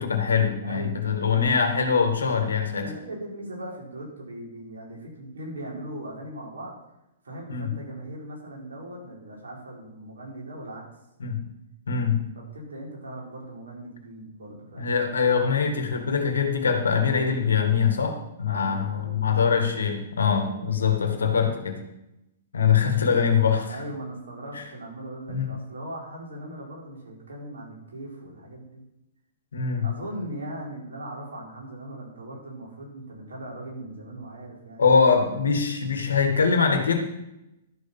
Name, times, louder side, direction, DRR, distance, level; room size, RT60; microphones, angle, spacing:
voice 1, 0.0-2.9 7.5-7.7 11.2-11.4 11.9-12.3 14.8-21.9 22.5-23.8 24.5-24.6 25.3-25.5 29.5-29.9 34.8-37.0, left 6 dB, 75° left, 6 dB, 1.9 m, -23 dB
voice 2, 0.6-1.5 2.8-6.7 7.2-10.8 12.5-14.9 18.4-19.4 20.3-21.4 23.7-28.8 29.8-34.8, right 1 dB, 75° right, -3 dB, 4.5 m, -39 dB
12.0 x 6.7 x 5.7 m, 0.88 s
figure-of-eight pair, 115°, 0 cm